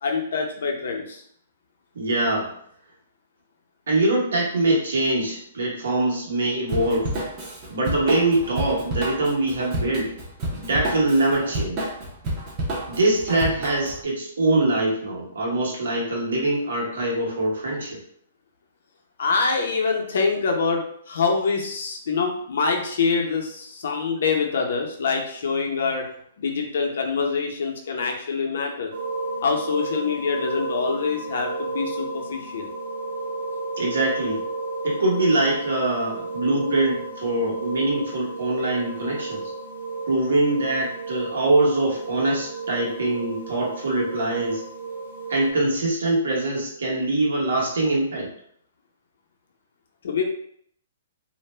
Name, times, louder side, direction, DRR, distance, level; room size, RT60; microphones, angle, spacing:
voice 1, 0.0-1.2 19.2-26.1 26.4-28.9 29.4-32.7 50.0-50.2, left 5 dB, 70° left, 2 dB, 0.6 m, -25 dB
voice 2, 1.9-2.5 3.9-7.1 7.7-10.1 10.6-11.8 12.9-18.0 33.8-34.4 34.8-39.4 40.1-44.6 45.3-48.3, right 2 dB, 85° right, -3 dB, 1.1 m, -23 dB
Drum kit / Drum, 6.7-14.0, right 1 dB, 25° right, 0.6 m, -30 dB
sound 1, 28.9-45.5, right 3 dB, 55° right, 0.8 m, -33 dB
2.5 x 2.1 x 3.2 m, 0.65 s
hypercardioid pair, 165°, 0 cm